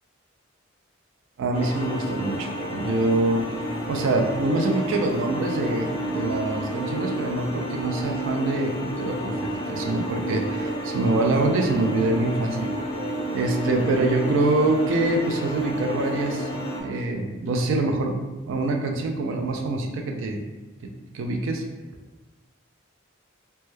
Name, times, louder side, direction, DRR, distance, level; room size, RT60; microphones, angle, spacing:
voice 1, 1.4-3.5 3.9-9.4 9.7-12.7 13.3-16.5 16.8-18.2 18.5-20.4 20.8-21.7, right 2 dB, 70° right, 3 dB, 0.3 m, -25 dB
sound 1, 1.5-16.8, right 1 dB, 30° left, 0.4 m, -30 dB
2.1 x 2.1 x 3.0 m, 1.2 s
head